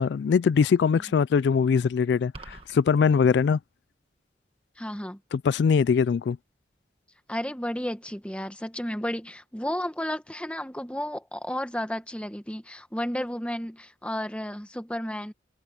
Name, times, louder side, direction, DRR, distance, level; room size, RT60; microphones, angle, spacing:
voice 1, 0.0-3.6 5.3-6.4, left 6 dB, 75° left, 0.3 m, -22 dB
sound 1, 2.3-2.8, right 2 dB, 30° right, 1.6 m, -43 dB
voice 2, 4.8-5.2 7.3-15.3, equal, 5° left, 1.1 m, -32 dB
head